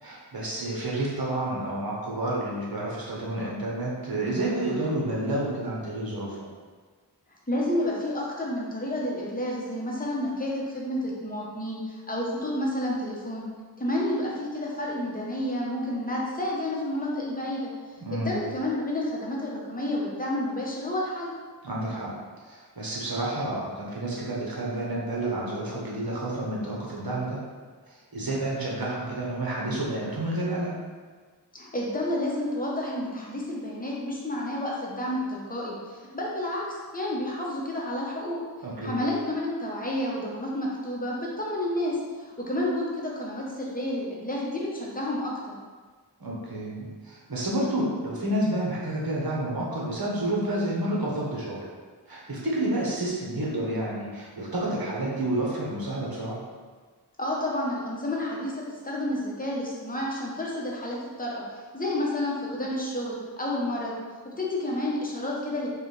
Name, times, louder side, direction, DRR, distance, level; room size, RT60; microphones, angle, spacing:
voice 1, 0.0-6.5 18.0-18.4 21.6-22.1 22.5-27.4 27.9-30.7 38.6-39.0 46.2-51.6 52.1-56.4, right 1 dB, 60° right, -5 dB, 1.1 m, -30 dB
voice 2, 7.5-13.4 13.8-17.6 18.1-21.3 31.5-38.4 38.8-45.5 57.2-61.4 61.7-63.9 64.2-65.7, left 1 dB, 20° left, -4 dB, 0.9 m, -30 dB
4.8 x 2.4 x 3.2 m, 1.5 s
wide cardioid pair, 55°, 41 cm